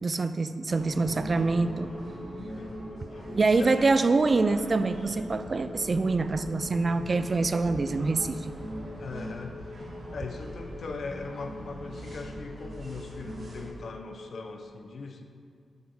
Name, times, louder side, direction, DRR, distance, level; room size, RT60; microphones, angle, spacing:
voice 1, 0.0-1.9 3.3-8.5, right 3 dB, 35° right, 12 dB, 0.4 m, -25 dB
sound 1, 0.7-13.7, right 1 dB, 60° right, 2.6 m, -41 dB
sound 2, 0.9-14.7, left 3 dB, 40° left, 2.2 m, -46 dB
voice 2, 2.5-3.9 9.0-9.6 10.1-15.2, left 4 dB, 60° left, 5 dB, 0.8 m, -40 dB
7.9 x 7.1 x 5.6 m, 2.2 s
wide cardioid pair, 105°, 0 cm